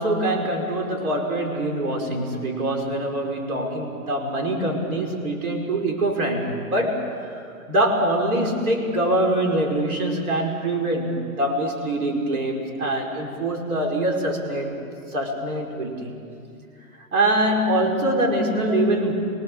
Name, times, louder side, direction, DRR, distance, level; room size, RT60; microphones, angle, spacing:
voice 1, 0.0-14.7 15.1-16.1 17.0-19.1, right 1 dB, 70° right, 2 dB, 5.2 m, -24 dB
26.0 x 23.5 x 7.6 m, 2.5 s
hypercardioid pair, 160°, 45 cm